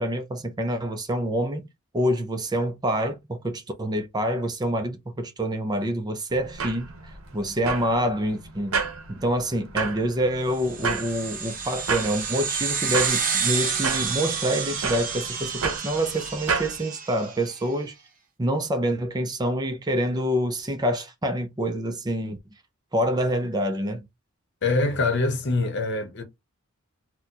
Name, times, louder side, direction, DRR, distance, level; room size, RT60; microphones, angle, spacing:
voice 1, 0.0-1.7 1.9-8.8 9.1-17.9 18.4-22.4 22.9-24.0, equal, 20° right, 0.4 m, -26 dB
sound 1, 6.3-16.8, right 5 dB, 75° right, 0.7 m, -32 dB
sound 2, 10.6-17.4, right 6 dB, 40° right, 0.8 m, -29 dB
voice 2, 24.6-26.2, left 3 dB, 55° left, 0.9 m, -24 dB
4.1 x 2.2 x 2.8 m
head